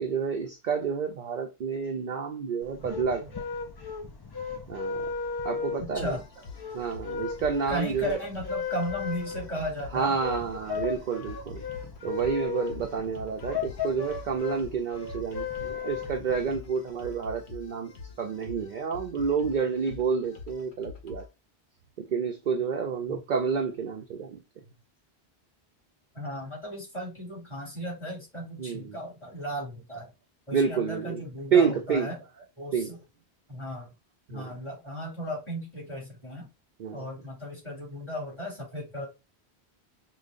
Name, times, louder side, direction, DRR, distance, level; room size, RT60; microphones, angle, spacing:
voice 1, 0.0-3.4 4.7-5.1 5.4-6.1 6.7-8.2 9.9-11.6 12.0-17.9 18.2-21.3 22.0-24.4 28.6-29.0 30.5-31.2 31.5-32.1 32.7-32.9 34.3-34.5 36.8-37.1, right 6 dB, 55° right, 0.6 m, -29 dB
sound 1, 2.6-16.6, left 5 dB, 40° left, 0.3 m, -36 dB
voice 2, 5.8-6.2 7.7-10.1 23.1-23.2 26.1-30.1 30.5-32.2 32.6-33.0 33.5-33.9 34.3-36.5 36.9-39.1, equal, 25° left, 2.4 m, -35 dB
sound 2, 6.0-21.3, left 5 dB, 75° left, 1.2 m, -46 dB
5.0 x 2.3 x 2.4 m
omnidirectional pair, 1.1 m